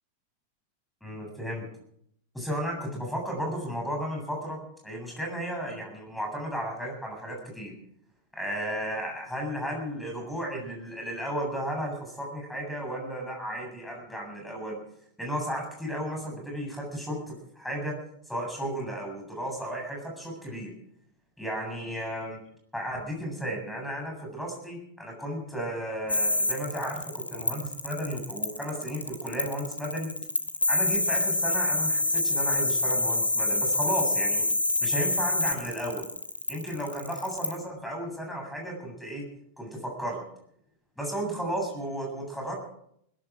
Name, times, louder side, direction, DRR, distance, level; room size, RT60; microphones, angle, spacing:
voice 1, 1.0-1.7 2.3-7.7 8.3-14.8 15.2-17.9 18.3-20.7 21.4-22.4 22.7-30.1 30.7-34.5 34.8-36.0 36.5-39.2 39.6-40.2 41.0-42.6, equal, 5° left, 1 dB, 7.7 m, -34 dB
sound 1, 26.1-37.6, left 2 dB, 85° left, 1.8 m, -26 dB
20.0 x 14.0 x 4.9 m, 0.70 s
figure-of-eight pair, 90°, 0 cm